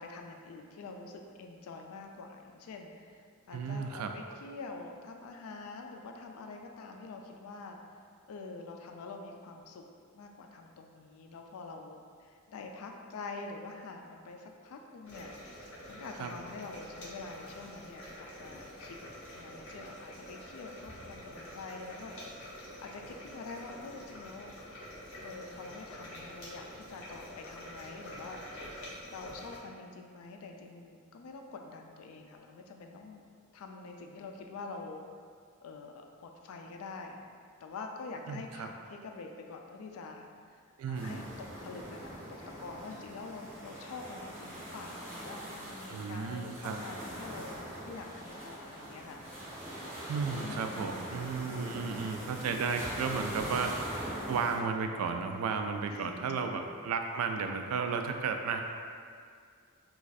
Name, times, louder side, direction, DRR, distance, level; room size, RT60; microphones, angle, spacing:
voice 1, 0.0-7.8 8.3-9.8 10.1-19.0 19.3-22.1 22.8-24.5 25.2-28.4 29.1-33.2 33.5-35.0 35.6-37.2 37.6-40.3 40.9-41.3 41.6-42.2 42.6-49.2 50.4-51.1 51.8-52.1 55.9-56.7, left 3 dB, 75° left, 3 dB, 0.4 m, -46 dB
voice 2, 3.5-4.1 16.2-16.3 38.3-38.7 40.8-41.2 45.9-46.8 50.1-53.7 54.3-58.6, right 5 dB, 90° right, 10 dB, 0.3 m, -33 dB
sound 1, 15.0-29.6, equal, 60° left, 0.9 m, -47 dB
sound 2, 40.9-54.6, right 1 dB, 10° right, 0.9 m, -42 dB
2.5 x 2.3 x 3.9 m, 2.2 s
head